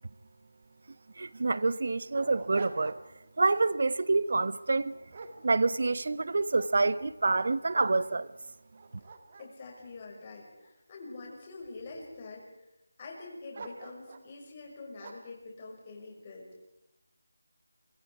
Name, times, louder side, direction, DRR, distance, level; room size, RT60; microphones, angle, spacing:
Dog, 0.6-0.7 1.0-1.1 1.7-3.3 3.7-4.0 4.6-6.1 6.5-7.5 8.1-8.2 8.6-11.0 11.6-12.2 13.5-14.3 15.0-15.4, right 4 dB, 35° right, 1.9 m, -47 dB
voice 1, 1.2-3.0 3.4-5.0 5.4-8.3, right 3 dB, 55° right, 0.9 m, -27 dB
voice 2, 9.4-12.5 13.0-16.5, left 3 dB, 25° left, 5.7 m, -45 dB
27.5 x 24.5 x 4.8 m
figure-of-eight pair, 165°, 0 cm